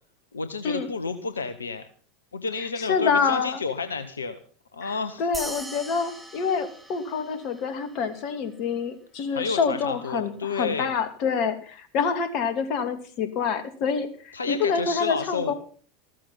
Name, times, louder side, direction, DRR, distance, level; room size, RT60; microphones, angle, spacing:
voice 1, 0.3-1.9 2.3-4.4 4.7-5.3 9.3-11.0 14.3-15.5, left 4 dB, 80° left, 10 dB, 1.1 m, -31 dB
voice 2, 2.6-3.6 4.8-4.9 5.2-15.5, left 6 dB, 45° left, 10 dB, 2.8 m, -27 dB
sound 1, 5.3-8.1, right 1 dB, 5° right, 3.7 m, -40 dB
15.0 x 14.0 x 5.7 m, 0.42 s
figure-of-eight pair, 80°, 0 cm